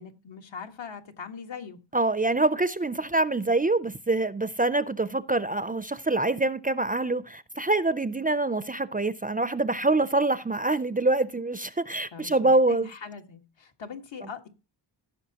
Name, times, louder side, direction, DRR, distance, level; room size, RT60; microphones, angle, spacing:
voice 1, 0.0-1.8 12.1-14.5, left 6 dB, 85° left, 1.7 m, -41 dB
voice 2, 1.9-12.9, right 2 dB, 20° right, 0.4 m, -25 dB
16.0 x 6.8 x 2.8 m
wide cardioid pair, 125°, 44 cm